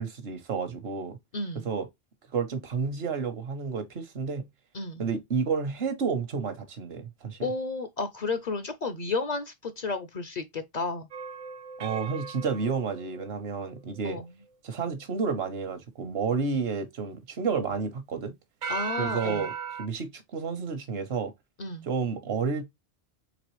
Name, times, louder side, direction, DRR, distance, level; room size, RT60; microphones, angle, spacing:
voice 1, 0.0-1.2 1.6-1.9 2.3-4.5 5.0-7.4 11.8-14.2 14.6-18.3 19.0-19.5 19.8-21.3 21.8-22.7, right 5 dB, 75° right, 1.0 m, -30 dB
voice 2, 1.3-1.7 4.7-5.0 7.4-11.1 14.0-14.3 18.7-19.5 21.6-21.9, left 3 dB, 50° left, 0.6 m, -32 dB
sound 1, 11.1-14.0 18.6-19.9, right 6 dB, 60° right, 0.6 m, -37 dB
4.0 x 3.2 x 3.0 m
omnidirectional pair, 1.1 m